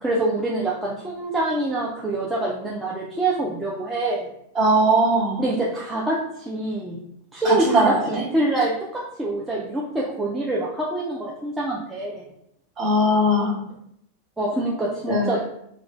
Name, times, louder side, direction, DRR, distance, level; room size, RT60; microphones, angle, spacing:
voice 1, 0.0-4.3 5.4-7.0 7.3-12.2 14.4-15.4, right 2 dB, 10° right, -5 dB, 0.4 m, -25 dB
voice 2, 4.5-5.4 7.4-8.2 12.8-13.6 15.1-15.3, right 1 dB, 30° right, -6 dB, 1.2 m, -20 dB
2.5 x 2.1 x 2.9 m, 0.74 s
figure-of-eight pair, 90°, 0 cm